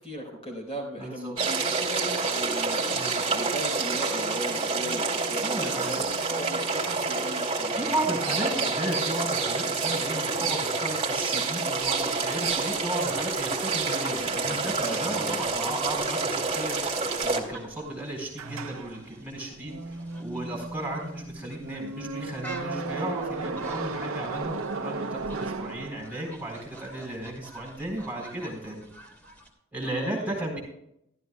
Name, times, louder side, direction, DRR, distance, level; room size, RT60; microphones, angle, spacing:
voice 1, 0.0-7.9 8.5-8.7 14.5-15.7 29.8-30.6, equal, 25° left, -1 dB, 3.8 m, -38 dB
voice 2, 1.0-1.3 2.9-3.2 5.4-6.1 7.7-28.8 29.7-30.6, right 1 dB, 10° right, -2 dB, 4.1 m, -34 dB
sound 1, 1.4-17.4, right 4 dB, 25° right, 2.4 m, -28 dB
sound 2, 11.8-29.5, right 2 dB, 10° left, 2.9 m, -48 dB
sound 3, 18.4-26.4, right 3 dB, 70° right, 0.7 m, -35 dB
14.5 x 13.0 x 2.3 m, 0.77 s
head